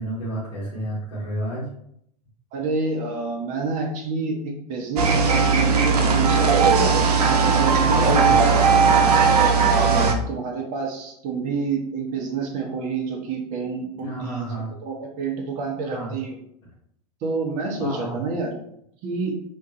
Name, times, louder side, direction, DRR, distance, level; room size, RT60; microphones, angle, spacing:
voice 1, 0.0-1.7 7.9-8.5 9.9-10.2 13.9-14.8 15.9-16.1 17.8-18.2, equal, 50° left, -7 dB, 1.0 m, -30 dB
voice 2, 2.5-8.9 9.6-14.5 14.8-16.4 17.2-18.5 19.0-19.4, right 4 dB, 40° right, 0 dB, 0.7 m, -28 dB
sound 1, 5.0-10.1, right 5 dB, 70° right, 0.4 m, -18 dB
2.4 x 2.2 x 2.7 m, 0.72 s
figure-of-eight pair, 95°, 20 cm